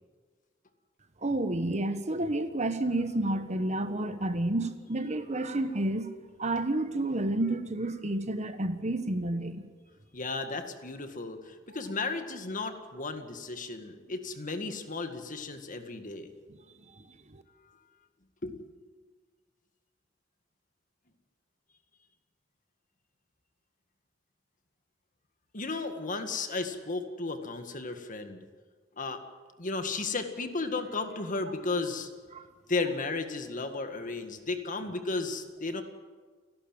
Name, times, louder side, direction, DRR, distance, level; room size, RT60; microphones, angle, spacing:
voice 1, 1.2-6.1 6.4-9.6 17.0-17.1 17.3-17.4 32.3-32.4, right 1 dB, 35° right, 10 dB, 1.3 m, -30 dB
voice 2, 10.1-16.3 18.4-18.6 25.5-28.4 29.0-29.2 29.6-32.1 32.7-35.8, left 3 dB, 45° left, 7 dB, 1.9 m, -34 dB
30.0 x 12.0 x 9.0 m, 1.5 s
head